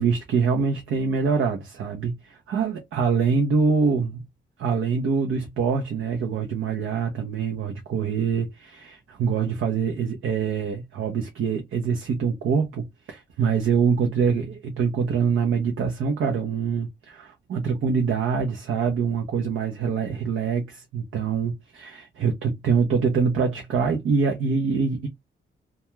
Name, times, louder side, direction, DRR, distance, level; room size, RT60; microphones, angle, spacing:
voice 1, 0.0-4.2 4.6-25.1, right 5 dB, 80° right, 0.6 m, -24 dB
2.3 x 2.2 x 2.9 m
cardioid pair, 80°, 21 cm